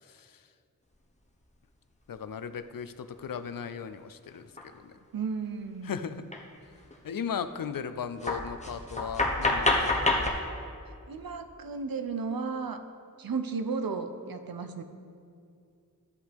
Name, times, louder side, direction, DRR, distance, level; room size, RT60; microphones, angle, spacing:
voice 1, 2.1-4.5 4.8-4.9 5.8-6.2 7.0-9.9, left 7 dB, 70° left, 11 dB, 0.5 m, -36 dB
sound 1, 4.6-4.7 6.3-6.4 6.7-6.9 7.6-7.7 8.2-10.3, left 2 dB, 20° left, 1.1 m, -27 dB
voice 2, 5.1-5.9 11.1-12.8 13.2-14.8, right 5 dB, 80° right, 8 dB, 0.7 m, -34 dB
13.0 x 8.0 x 3.5 m, 2.4 s
wide cardioid pair, 65°, 34 cm